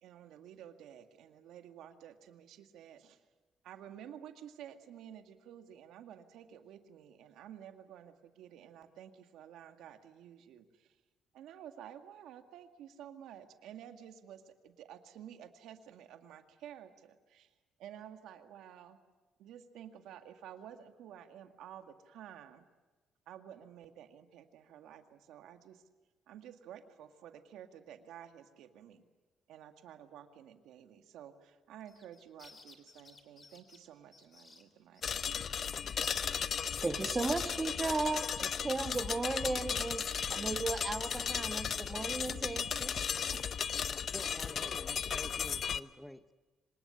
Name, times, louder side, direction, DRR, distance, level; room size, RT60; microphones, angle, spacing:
voice 1, 0.0-3.2 3.6-11.0 11.3-17.5 17.8-19.0 19.4-22.7 23.3-25.8 26.3-29.0 29.5-35.1, right 10 dB, 80° right, 7 dB, 2.0 m, -52 dB
sound 1, 31.8-35.4 35.8-36.2 36.5-41.9, left 3 dB, 25° left, 3.2 m, -60 dB
sound 2, 35.0-45.8, left 7 dB, 50° left, 0.8 m, -35 dB
voice 2, 36.8-43.4, right 3 dB, 20° right, 8 dB, 1.4 m, -36 dB
voice 3, 44.1-46.3, left 1 dB, 5° left, 12 dB, 0.8 m, -49 dB
25.5 x 19.5 x 9.9 m, 1.2 s
cardioid pair, 115°, 0 cm